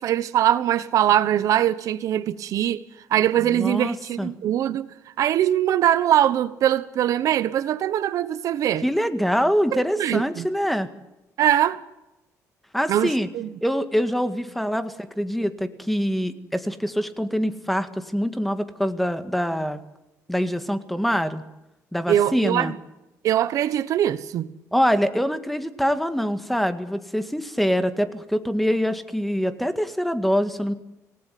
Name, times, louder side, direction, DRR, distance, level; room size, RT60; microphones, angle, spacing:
voice 1, 0.0-2.8 3.1-4.9 5.2-8.8 9.7-10.5 11.4-11.8 12.9-13.5 22.1-22.8 23.2-24.5, right 11 dB, 65° right, 1.1 m, -22 dB
voice 2, 3.4-4.3 8.8-10.9 12.7-13.3 13.6-19.8 20.3-21.4 21.9-22.7 24.7-30.7, equal, ahead, 1.8 m, -24 dB
27.5 x 18.0 x 9.4 m
cardioid pair, 140°, 6 cm